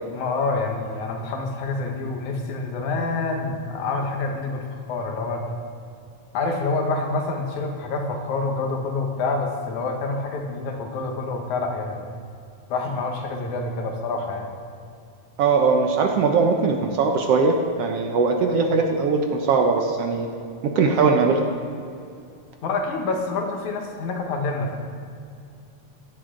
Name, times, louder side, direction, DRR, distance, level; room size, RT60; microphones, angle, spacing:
voice 1, 0.1-5.5 6.3-12.1 12.7-14.5 22.6-24.8, left 3 dB, 75° left, 2 dB, 2.7 m, -27 dB
voice 2, 15.4-20.3 20.6-21.4, right 4 dB, 65° right, 3 dB, 1.6 m, -20 dB
16.5 x 12.0 x 3.8 m, 2.5 s
omnidirectional pair, 3.4 m